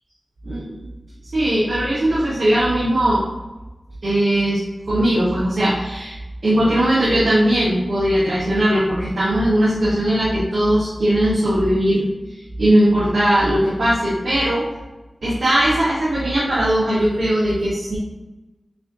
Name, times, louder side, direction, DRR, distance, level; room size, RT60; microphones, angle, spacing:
voice 1, 0.4-0.8 1.3-3.2 4.0-12.0 12.6-14.6 15.2-18.0, right 1 dB, 85° right, -10 dB, 1.3 m, -19 dB
7.1 x 2.7 x 2.6 m, 1.1 s
wide cardioid pair, 50°, 0 cm